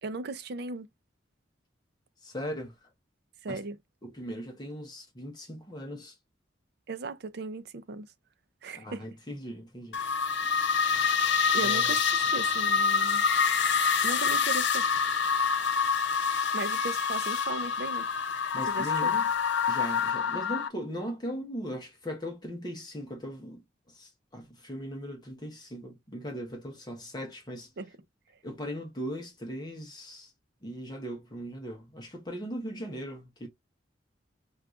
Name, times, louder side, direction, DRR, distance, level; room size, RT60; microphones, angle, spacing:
voice 1, 0.0-0.9 3.4-3.8 6.9-8.1 8.6-9.1 11.5-13.2 14.0-14.9 16.5-18.1 18.7-19.1 27.8-27.9, right 3 dB, 60° right, 0.5 m, -37 dB
voice 2, 2.2-2.8 3.5-3.6 4.0-6.2 8.7-10.0 11.6-12.0 18.5-19.2 19.7-23.6 23.9-27.7 28.4-30.3 30.6-33.5, equal, 20° left, 0.8 m, -39 dB
sound 1, 9.9-20.7, left 6 dB, 70° left, 0.6 m, -26 dB
4.7 x 2.4 x 2.4 m
head